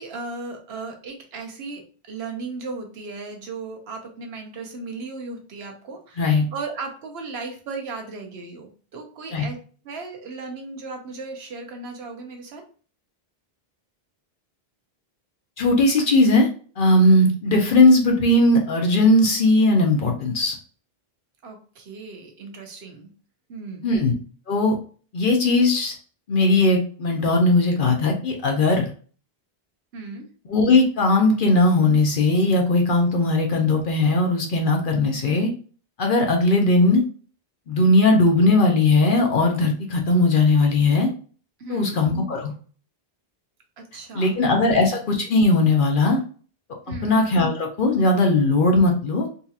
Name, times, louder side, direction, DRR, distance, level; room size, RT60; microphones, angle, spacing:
voice 1, 0.0-9.6 9.8-12.6 21.4-23.1 23.5-23.9 29.9-30.3 41.6-42.0 43.8-44.3 44.6-44.8 46.9-47.2, right 3 dB, 85° right, 3 dB, 1.0 m, -36 dB
voice 2, 15.6-16.5 16.8-20.5 23.8-24.1 24.5-24.8 25.1-25.9 26.3-28.9 30.5-35.5 36.0-37.0 37.7-41.1 41.7-42.5 44.1-46.2 46.9-49.3, left 2 dB, 60° left, 2 dB, 0.8 m, -18 dB
3.9 x 2.8 x 2.4 m, 0.41 s
omnidirectional pair, 1.0 m